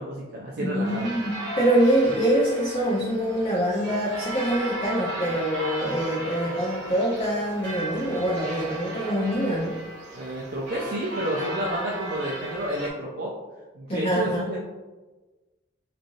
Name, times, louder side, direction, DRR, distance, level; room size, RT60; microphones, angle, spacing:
voice 1, 0.0-1.1 10.1-13.3 13.7-14.6, right 1 dB, 55° right, -3 dB, 0.4 m, -30 dB
voice 2, 0.6-9.8 13.9-14.5, right 1 dB, 30° left, -6 dB, 0.5 m, -25 dB
sound 1, 0.8-12.9, right 1 dB, 75° right, 0.8 m, -35 dB
3.1 x 2.4 x 2.5 m, 1.2 s
head